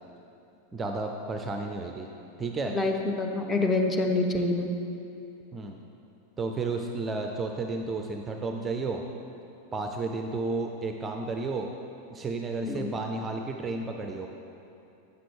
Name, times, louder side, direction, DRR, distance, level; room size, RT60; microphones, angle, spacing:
voice 1, 0.7-2.1 2.4-2.8 5.5-5.8 6.4-9.0 9.7-11.7 12.1-14.3, right 3 dB, 20° right, 3 dB, 0.5 m, -32 dB
voice 2, 2.7-4.7 12.6-12.9, left 2 dB, 15° left, 2 dB, 0.7 m, -27 dB
8.3 x 6.0 x 4.7 m, 2.8 s
figure-of-eight pair, 90°, 0 cm